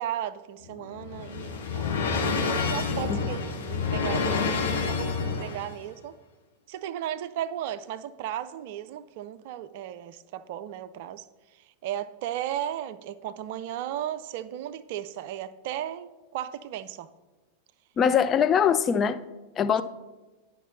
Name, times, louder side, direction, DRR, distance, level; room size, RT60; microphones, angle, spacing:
voice 1, 0.0-2.4 2.7-6.2 6.7-11.3 11.5-17.1, right 11 dB, 50° right, 0.4 m, -35 dB
sound 1, 0.6-5.7, left 5 dB, 60° left, 1.0 m, -28 dB
voice 2, 18.0-19.2 19.6-19.8, left 7 dB, 25° left, 0.4 m, -22 dB
10.0 x 5.8 x 3.9 m
figure-of-eight pair, 90°, 0 cm